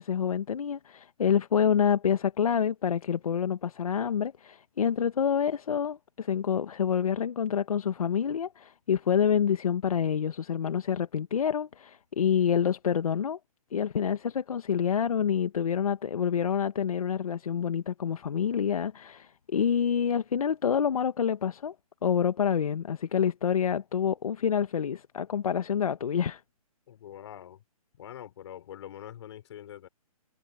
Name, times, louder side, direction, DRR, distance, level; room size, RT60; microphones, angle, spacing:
voice 1, 0.0-13.4 13.7-21.7 22.0-26.4, left 8 dB, 70° left, 1.3 m, -27 dB
voice 2, 26.9-27.6 28.0-29.9, left 11 dB, 45° left, 3.3 m, -44 dB
hypercardioid pair, 155°, 19 cm